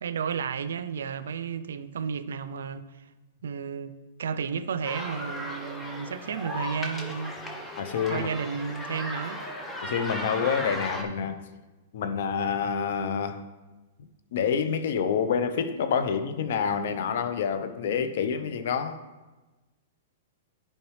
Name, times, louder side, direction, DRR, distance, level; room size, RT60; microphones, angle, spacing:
voice 1, 0.0-2.9 3.4-3.9 4.2-7.4 8.1-9.4, right 6 dB, 85° right, 0.4 m, -32 dB
sound 1, 4.8-11.0, equal, 10° left, 0.9 m, -36 dB
voice 2, 7.8-8.3 9.8-11.4 11.9-13.4 14.3-19.0, left 7 dB, 65° left, 0.6 m, -27 dB
10.5 x 4.4 x 3.2 m
hypercardioid pair, 130°, 0 cm